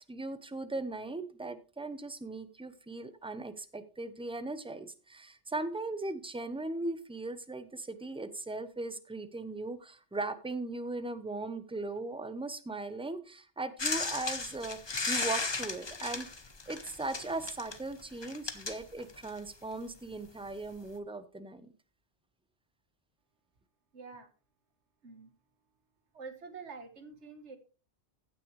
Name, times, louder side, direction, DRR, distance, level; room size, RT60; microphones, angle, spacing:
voice 1, 0.1-16.3 16.7-21.6, right 2 dB, 5° right, 11 dB, 0.7 m, -38 dB
sound 1, 13.8-19.5 20.5-20.6, left 3 dB, 25° left, 0.8 m, -36 dB
voice 2, 23.9-24.3 25.0-25.3 26.1-27.6, right 4 dB, 90° right, 7 dB, 1.7 m, -47 dB
16.0 x 6.3 x 3.2 m, 0.35 s
omnidirectional pair, 1.1 m